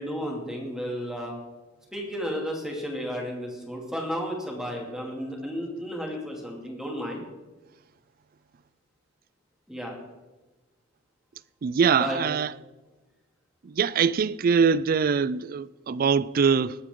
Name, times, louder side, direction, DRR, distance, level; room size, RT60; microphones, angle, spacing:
voice 1, 0.0-1.3 1.9-7.2 9.7-9.9 12.0-12.2, equal, 5° right, 2.6 m, -33 dB
voice 2, 11.6-12.5 13.6-16.8, right 6 dB, 45° right, 0.4 m, -23 dB
20.0 x 8.3 x 3.8 m
head